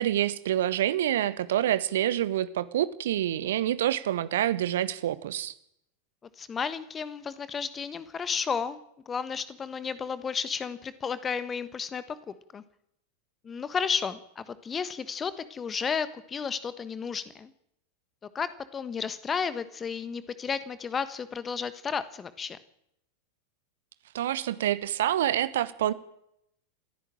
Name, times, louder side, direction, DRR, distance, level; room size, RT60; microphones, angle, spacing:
voice 1, 0.0-5.5 24.1-25.9, right 12 dB, 60° right, 16 dB, 1.1 m, -27 dB
voice 2, 6.4-8.8 9.1-12.6 13.4-17.5 18.3-22.6, left 6 dB, 20° left, 14 dB, 1.3 m, -33 dB
28.0 x 11.0 x 8.9 m, 0.79 s
figure-of-eight pair, 90°, 0 cm